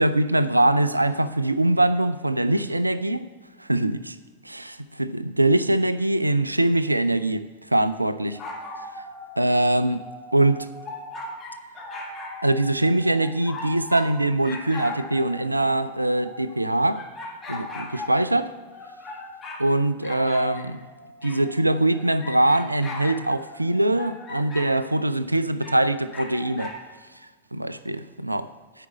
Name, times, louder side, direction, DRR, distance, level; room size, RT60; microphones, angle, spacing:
voice 1, 0.0-3.3 3.6-4.2 4.4-8.4 9.4-10.0 10.3-10.7 12.4-17.0 17.5-18.5 19.6-20.8 21.2-26.7 27.5-28.5, right 1 dB, 85° right, 0.4 m, -23 dB
sound 1, 8.3-14.1 14.4-19.6 20.0-24.7 25.6-26.8, left 2 dB, 20° left, 1.7 m, -39 dB
9.6 x 4.9 x 7.9 m
figure-of-eight pair, 90°, 0 cm